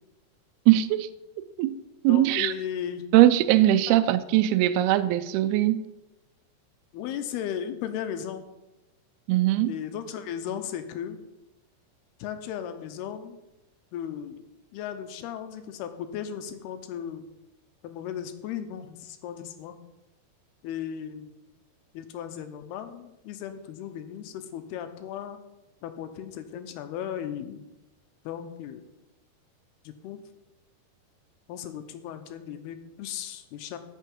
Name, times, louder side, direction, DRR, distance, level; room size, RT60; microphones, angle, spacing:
voice 1, 0.7-1.1 1.6-2.5 3.1-5.8 9.3-9.7, right 14 dB, 80° right, 11 dB, 2.4 m, -21 dB
voice 2, 2.1-3.1 3.9-4.0 6.9-8.5 9.6-11.2 12.2-13.4 13.9-14.4 14.7-17.3 17.8-19.8 20.6-21.3 21.9-25.4 25.8-27.6 28.2-28.9 29.8-30.2 31.5-33.8, left 9 dB, 80° left, 8 dB, 2.8 m, -36 dB
14.0 x 6.5 x 5.4 m, 0.95 s
omnidirectional pair, 4.6 m